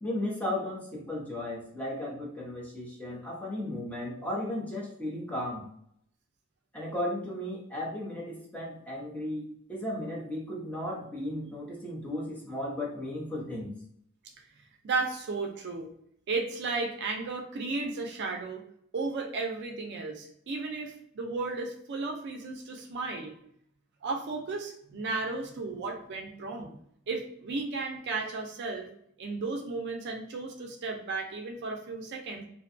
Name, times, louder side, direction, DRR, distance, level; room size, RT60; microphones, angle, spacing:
voice 1, 0.0-5.7 6.7-13.7, left 1 dB, 5° left, -4 dB, 0.7 m, -35 dB
voice 2, 14.8-15.9 16.3-18.6 18.9-23.3 24.0-26.7 27.1-28.9 29.2-32.4, right 3 dB, 55° right, 2 dB, 0.4 m, -34 dB
2.6 x 2.2 x 2.5 m, 0.67 s
head